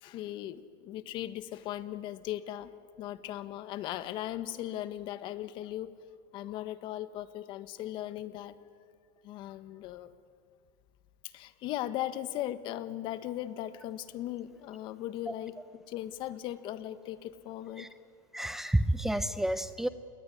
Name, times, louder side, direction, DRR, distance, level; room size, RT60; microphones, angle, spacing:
voice 1, 0.0-2.7 3.0-6.0 6.3-8.5 9.2-10.1 11.3-15.5 15.9-17.9, left 13 dB, 45° left, 13 dB, 1.4 m, -38 dB
voice 2, 18.3-19.9, right 1 dB, 5° right, 13 dB, 0.7 m, -29 dB
28.0 x 21.0 x 9.9 m, 2.2 s
supercardioid pair, 140°, 11 cm